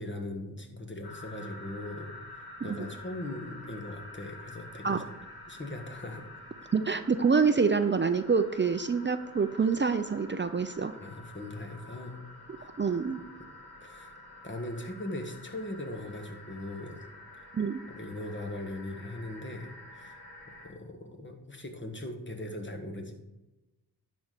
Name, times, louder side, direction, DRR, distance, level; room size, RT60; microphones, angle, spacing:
voice 1, 0.0-5.0 5.5-6.3 10.9-12.2 12.6-12.7 13.8-14.1 14.4-17.0 17.9-20.1 20.6-23.1, left 1 dB, 30° left, 4 dB, 1.7 m, -40 dB
sound 1, 1.0-20.7, left 2 dB, 85° left, 2.7 m, -49 dB
voice 2, 6.7-10.9 12.8-13.2 17.5-17.8, right 5 dB, 30° right, 9 dB, 0.5 m, -26 dB
10.5 x 4.3 x 6.7 m, 1.0 s
cardioid pair, 70°, 37 cm